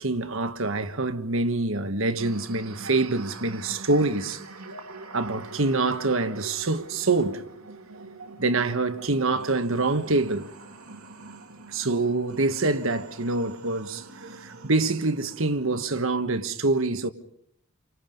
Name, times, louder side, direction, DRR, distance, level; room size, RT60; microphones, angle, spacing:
voice 1, 0.0-4.4 5.1-7.4 8.4-10.5 11.7-14.0 14.4-17.1, right 3 dB, 65° right, 1.4 m, -25 dB
sound 1, 2.2-15.9, right 3 dB, 85° right, 2.8 m, -44 dB
30.0 x 25.0 x 5.3 m
head